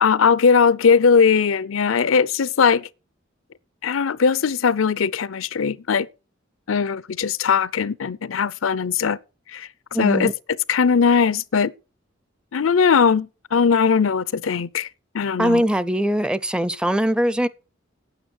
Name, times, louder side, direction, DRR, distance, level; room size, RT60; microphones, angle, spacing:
voice 1, 0.0-2.9 3.8-6.1 6.7-9.2 9.5-9.7 10.0-10.3 10.7-11.7 12.5-14.9 15.1-15.6, left 6 dB, 75° left, 0.5 m, -19 dB
voice 2, 9.9-10.3 15.4-17.5, equal, 5° right, 0.5 m, -21 dB
9.3 x 8.8 x 6.3 m
head